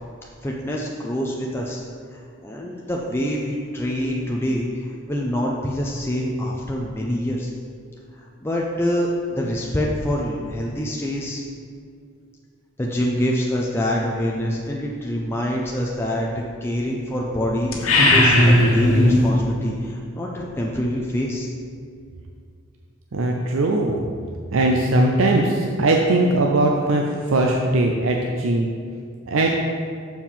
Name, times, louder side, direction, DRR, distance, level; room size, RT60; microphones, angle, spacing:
voice 1, 0.4-1.8 2.1-7.5 8.2-11.4 12.8-17.7 18.1-21.5, equal, 10° left, -3 dB, 0.5 m, -25 dB
sound 1, 17.7-19.3, left 1 dB, 85° left, 1.3 m, -16 dB
voice 2, 23.1-24.0 24.5-28.7 29.3-29.5, right 2 dB, 75° right, 1 dB, 0.5 m, -20 dB
7.1 x 4.6 x 5.6 m, 2.2 s
head